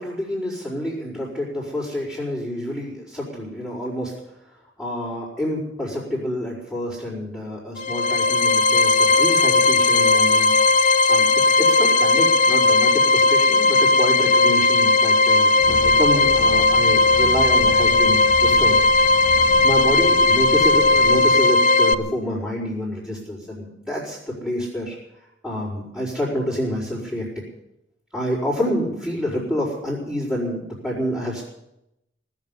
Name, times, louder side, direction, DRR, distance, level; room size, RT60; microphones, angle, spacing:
voice 1, 0.0-4.1 4.8-10.5 11.1-11.3 11.6-18.8 19.1-25.0 25.4-27.3 28.1-31.4, left 1 dB, 5° right, -10 dB, 5.3 m, -27 dB
sound 1, 7.8-21.9, left 3 dB, 40° left, 0.6 m, -17 dB
sound 2, 15.6-21.3, equal, 40° right, 4.4 m, -34 dB
19.0 x 7.5 x 9.9 m, 0.85 s
head